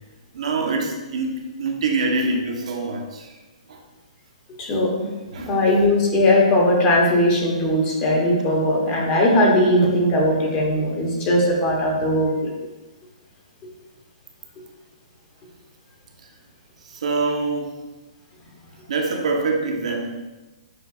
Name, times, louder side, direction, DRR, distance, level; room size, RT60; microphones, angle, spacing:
voice 1, 0.3-1.3 1.6-3.3 3.7-3.8 5.3-5.5 16.9-17.7 18.9-20.1, right 3 dB, 70° right, 1 dB, 0.8 m, -24 dB
voice 2, 4.6-5.1 5.4-12.5, left 1 dB, 30° left, -2 dB, 1.1 m, -19 dB
6.5 x 2.6 x 2.6 m, 1.1 s
hypercardioid pair, 135°, 4 cm